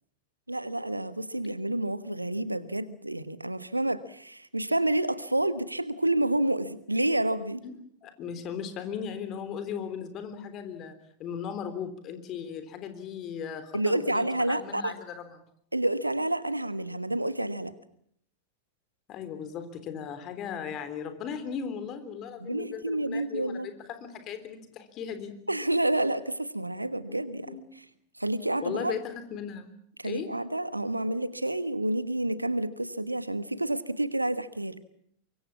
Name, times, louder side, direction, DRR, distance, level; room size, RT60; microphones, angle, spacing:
voice 1, 0.5-7.6 13.7-14.9 15.7-17.7 22.4-23.7 25.5-27.6 28.2-28.9 30.0-34.8, right 1 dB, 85° right, 15 dB, 1.3 m, -29 dB
voice 2, 8.0-15.4 19.1-25.3 27.5-27.6 28.6-29.7 30.0-30.3, left 7 dB, 35° left, 10 dB, 3.5 m, -37 dB
24.5 x 22.5 x 7.2 m, 0.67 s
figure-of-eight pair, 90°, 0 cm